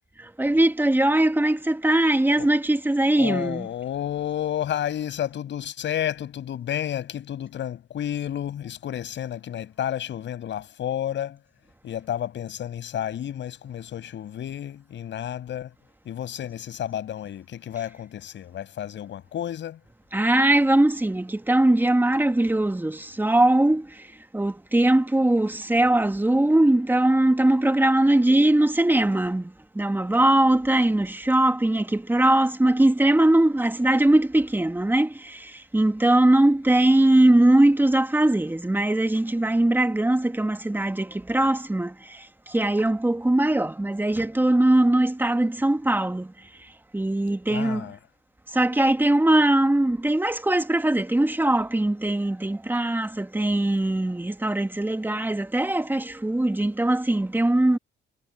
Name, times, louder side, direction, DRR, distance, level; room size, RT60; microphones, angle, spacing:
voice 1, 0.2-3.7 20.1-46.3 46.6-47.9 48.5-57.8, right 1 dB, 10° right, 2.1 m, -21 dB
voice 2, 3.2-11.4 11.8-15.7 16.1-19.8 47.5-48.0, left 10 dB, 70° left, 7.2 m, -31 dB
cardioid pair, 90°, 20 cm